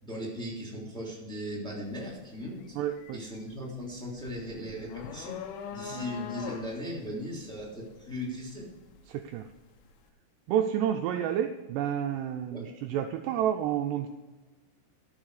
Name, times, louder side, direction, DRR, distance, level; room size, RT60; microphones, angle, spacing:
voice 1, 0.0-2.7 3.1-5.4 5.7-8.7 12.5-12.7, equal, ahead, -3 dB, 1.9 m, -38 dB
sound 1, 1.9-2.1 2.5-9.5, left 8 dB, 80° left, 3.4 m, -42 dB
voice 2, 2.8-3.2 5.9-6.0 9.1-9.5 10.5-14.1, right 10 dB, 85° right, 5 dB, 2.4 m, -30 dB
13.5 x 7.1 x 4.8 m, 1.2 s
omnidirectional pair, 5.4 m